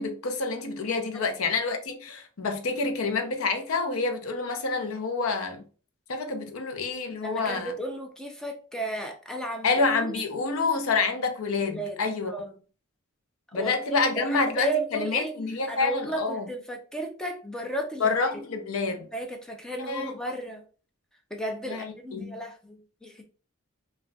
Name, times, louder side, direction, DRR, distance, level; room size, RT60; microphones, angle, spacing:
voice 1, 0.0-5.6 6.1-7.7 9.6-12.3 13.5-16.5 18.0-19.1 19.8-20.1 21.7-22.3, left 4 dB, 85° left, 0.6 m, -28 dB
voice 2, 7.2-9.8 10.1-10.2 11.6-12.0 12.2-12.5 13.5-15.3 15.7-18.2 19.1-20.6 21.3-23.2, right 1 dB, 5° left, 0.5 m, -34 dB
3.9 x 2.3 x 2.2 m
head